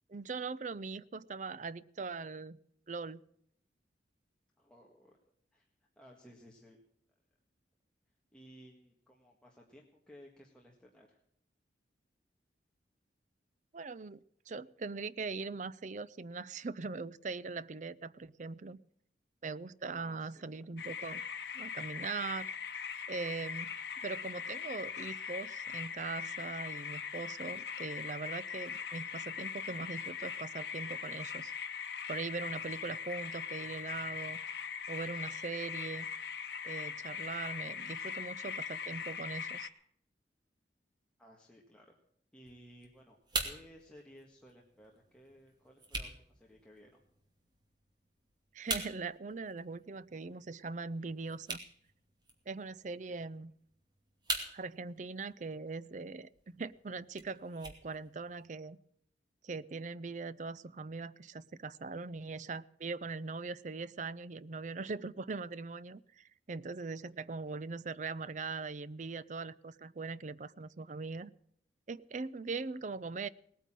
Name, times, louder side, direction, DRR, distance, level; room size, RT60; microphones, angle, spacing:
voice 1, 0.1-2.6 2.9-3.2 13.7-18.8 19.4-21.2 21.5-22.5 23.1-31.5 32.1-34.4 34.9-36.1 36.6-39.7 48.5-51.6 52.5-53.5 54.5-58.8 59.4-71.3 71.9-73.3, right 4 dB, 45° right, 18 dB, 0.5 m, -41 dB
voice 2, 4.6-5.2 5.5-5.7 5.9-6.8 8.3-11.2 20.0-20.7 41.2-41.9 42.3-47.0, equal, 5° left, -2 dB, 1.7 m, -58 dB
sound 1, 20.8-39.7, left 7 dB, 70° left, 1.2 m, -41 dB
sound 2, 42.4-58.5, right 2 dB, 25° right, 2.5 m, -45 dB
19.0 x 9.2 x 7.6 m, 0.69 s
head